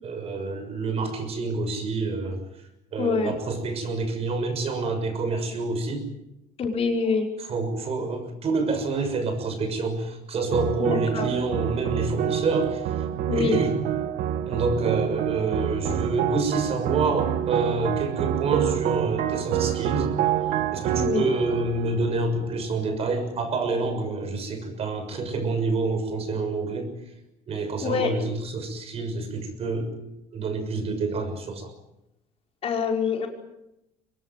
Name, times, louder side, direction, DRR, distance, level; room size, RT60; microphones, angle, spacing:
voice 1, 0.0-2.4 2.9-6.0 7.5-12.9 13.3-13.7 14.5-20.2 20.7-26.9 27.5-29.9 30.3-31.7, right 3 dB, 45° right, 8 dB, 6.5 m, -27 dB
voice 2, 3.0-3.4 6.6-7.3 10.8-11.3 13.3-13.6 21.0-21.3 27.8-28.1 32.6-33.3, left 5 dB, 45° left, 1 dB, 5.5 m, -25 dB
sound 1, 10.5-23.0, right 10 dB, 70° right, 1.5 m, -27 dB
24.0 x 20.5 x 9.3 m, 0.87 s
cardioid pair, 125°, 14 cm